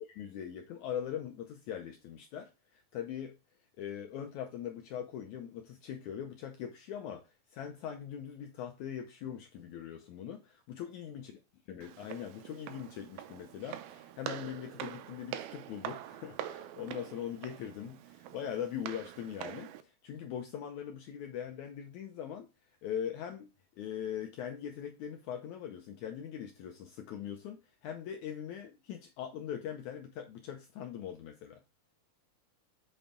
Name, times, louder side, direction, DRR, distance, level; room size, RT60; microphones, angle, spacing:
voice 1, 0.1-3.4 3.8-11.3 11.7-22.5 22.8-23.5 23.8-31.6, left 9 dB, 85° left, 1.7 m, -41 dB
Walk footsteps, 11.8-19.8, right 11 dB, 85° right, 2.6 m, -44 dB
7.4 x 5.6 x 3.7 m
omnidirectional pair, 4.3 m